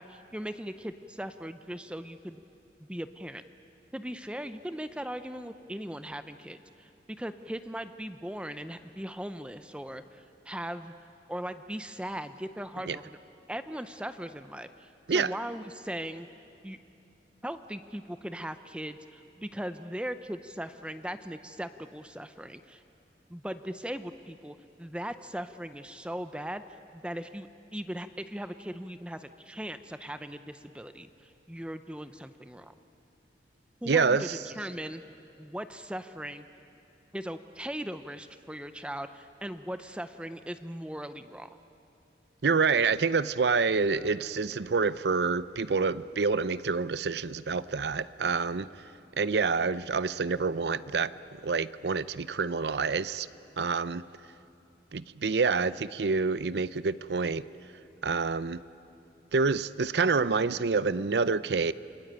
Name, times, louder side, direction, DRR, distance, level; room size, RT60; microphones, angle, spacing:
voice 1, 0.0-2.4 2.9-3.4 3.9-6.9 7.2-10.9 11.3-13.2 13.5-16.3 16.6-16.8 17.4-22.8 23.3-26.6 26.9-32.7 33.8-35.0 35.4-36.4 37.1-41.6, equal, 5° right, 0.6 m, -39 dB
voice 2, 33.9-34.4 42.4-48.7 49.2-51.1 51.4-53.3 53.6-54.0 54.9-57.4 58.0-58.6 59.3-61.7, right 4 dB, 75° right, 0.6 m, -27 dB
29.0 x 21.5 x 8.9 m
head